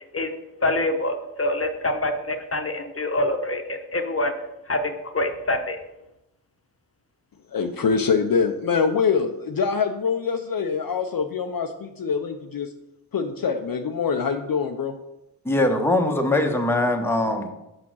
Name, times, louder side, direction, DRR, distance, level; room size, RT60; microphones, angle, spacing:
voice 1, 0.6-4.3 4.7-5.8, left 1 dB, 35° left, 6 dB, 1.1 m, -25 dB
voice 2, 7.5-12.7 13.1-15.0, left 5 dB, 55° left, 5 dB, 0.7 m, -24 dB
voice 3, 15.4-17.5, left 1 dB, 5° left, 3 dB, 1.1 m, -21 dB
6.0 x 5.1 x 6.2 m, 0.91 s
cardioid pair, 55°, 42 cm